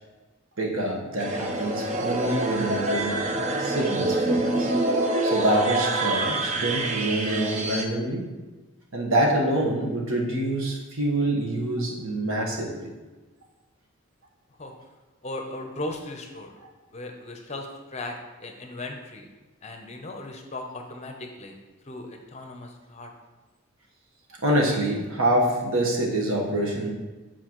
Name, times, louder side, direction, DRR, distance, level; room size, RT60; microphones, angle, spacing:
voice 1, 0.6-3.2 3.6-4.7 5.2-8.3 8.9-12.9 24.4-26.9, right 1 dB, 75° right, -1 dB, 1.2 m, -26 dB
sound 1, 1.2-7.8, right 2 dB, 35° right, 0.5 m, -26 dB
voice 2, 15.2-16.6 16.9-19.3 19.6-21.6 21.8-23.1, left 2 dB, 30° left, 4 dB, 0.6 m, -37 dB
8.5 x 4.4 x 3.0 m, 1.2 s
head